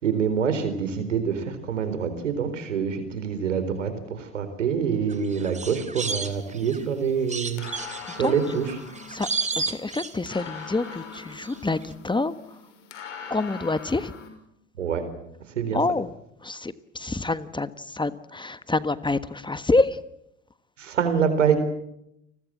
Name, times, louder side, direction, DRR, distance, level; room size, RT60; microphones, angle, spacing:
voice 1, 0.0-8.7 14.8-15.0 15.6-15.8 20.8-21.6, right 7 dB, 85° right, 11 dB, 4.2 m, -26 dB
sound 1, 5.1-6.8 7.3-10.6 10.9-11.6 11.8-11.9, right 4 dB, 20° right, 2.9 m, -33 dB
sound 2, 6.3-14.3, left 6 dB, 80° left, 6.0 m, -42 dB
voice 2, 9.6-12.6 13.3-14.1 15.7-16.1 16.4-20.0, left 3 dB, 15° left, 14 dB, 1.4 m, -27 dB
29.5 x 21.0 x 7.5 m, 0.80 s
hypercardioid pair, 70°, 36 cm